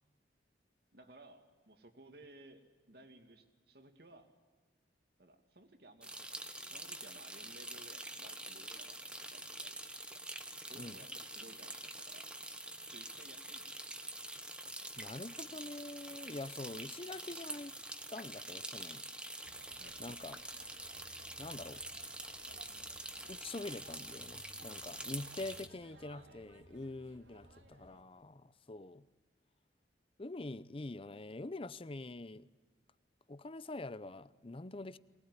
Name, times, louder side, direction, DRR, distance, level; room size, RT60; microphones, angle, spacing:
voice 1, 0.9-4.3 5.2-10.2 10.6-12.3 12.9-13.9 19.8-20.0 26.1-26.5, right 2 dB, 60° right, 2.4 m, -59 dB
sound 1, 6.0-25.7, right 1 dB, 5° right, 1.3 m, -46 dB
voice 2, 15.0-17.7 18.1-19.0 20.0-20.4 21.4-21.8 23.3-29.1 30.2-32.5 33.3-35.0, left 2 dB, 30° left, 0.7 m, -45 dB
sound 2, 19.4-28.0, right 1 dB, 80° right, 2.2 m, -60 dB
23.0 x 20.0 x 9.8 m
head